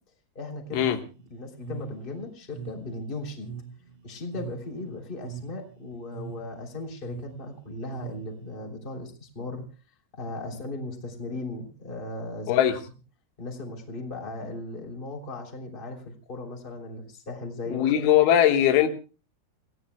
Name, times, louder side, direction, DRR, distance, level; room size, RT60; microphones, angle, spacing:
voice 1, 0.3-1.0 1.3-3.5 4.0-9.7 10.1-12.6 13.4-18.0, left 2 dB, 15° left, 2.5 m, -37 dB
sound 1, 0.7-8.6, right 7 dB, 80° right, 3.4 m, -42 dB
voice 2, 12.5-12.8 17.7-18.9, left 11 dB, 90° left, 3.9 m, -20 dB
28.5 x 17.0 x 2.2 m
omnidirectional pair, 5.3 m